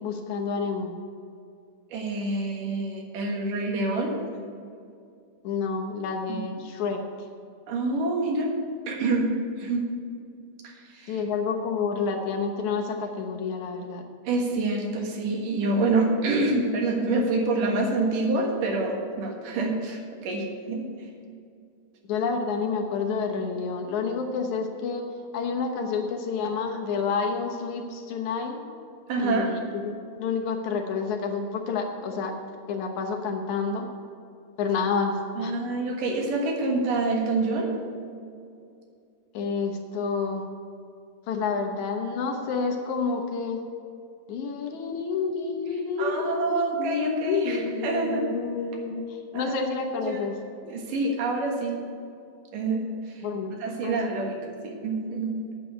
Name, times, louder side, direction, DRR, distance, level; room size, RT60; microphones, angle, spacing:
voice 1, 0.0-1.0 5.4-7.0 11.1-14.0 22.1-25.0 25.3-28.6 29.2-32.3 32.7-33.9 34.6-35.5 39.3-40.4 41.3-43.6 44.3-49.0 49.3-50.3 53.2-53.5 53.8-54.0, left 5 dB, 70° left, 2 dB, 2.3 m, -29 dB
voice 2, 1.9-4.2 6.3-6.4 7.7-8.5 8.9-9.9 10.6-11.2 14.2-21.1 29.1-29.6 35.4-37.8 46.0-48.3 49.3-49.5 50.0-50.2 50.6-51.8 52.5-53.3 53.5-55.4, right 2 dB, 85° right, 1 dB, 3.2 m, -27 dB
9.1 x 6.8 x 8.5 m, 2.4 s
omnidirectional pair, 3.7 m